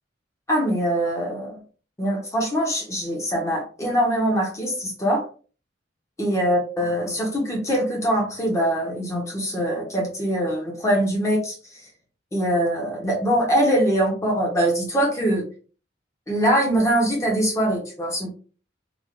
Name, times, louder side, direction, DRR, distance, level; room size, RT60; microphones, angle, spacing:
voice 1, 0.5-1.6 2.0-5.2 6.2-11.6 12.3-15.5 16.3-18.3, right 1 dB, 15° left, -1 dB, 0.8 m, -23 dB
3.2 x 2.4 x 2.4 m, 0.38 s
head